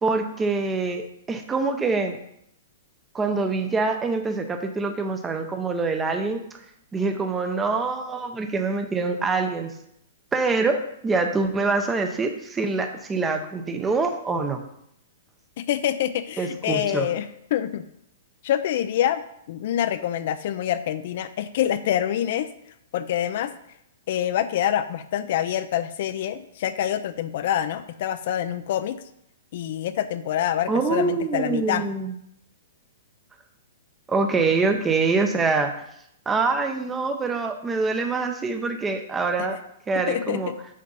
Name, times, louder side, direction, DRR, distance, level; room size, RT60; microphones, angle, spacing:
voice 1, 0.0-2.2 3.1-6.4 6.9-9.7 10.3-10.8 11.0-14.6 16.4-17.1 30.7-32.1 34.1-35.7 36.3-39.6 39.9-40.5, right 4 dB, 10° right, 6 dB, 0.7 m, -25 dB
voice 2, 15.6-17.9 18.4-22.5 22.9-23.5 24.1-29.0 29.5-31.9 39.4-39.5 40.1-40.6, left 11 dB, 55° left, 12 dB, 0.5 m, -26 dB
6.8 x 6.5 x 5.4 m, 0.75 s
hypercardioid pair, 150°, 0 cm